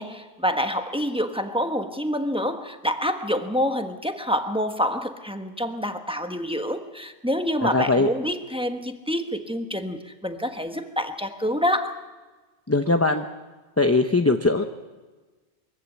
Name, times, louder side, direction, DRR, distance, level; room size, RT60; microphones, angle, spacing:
voice 1, 0.0-12.1, equal, 5° right, 6 dB, 1.2 m, -27 dB
voice 2, 7.6-8.1 12.7-13.2 13.8-14.6, left 3 dB, 15° left, 6 dB, 0.7 m, -20 dB
23.0 x 15.5 x 8.4 m, 1.3 s
omnidirectional pair, 1.2 m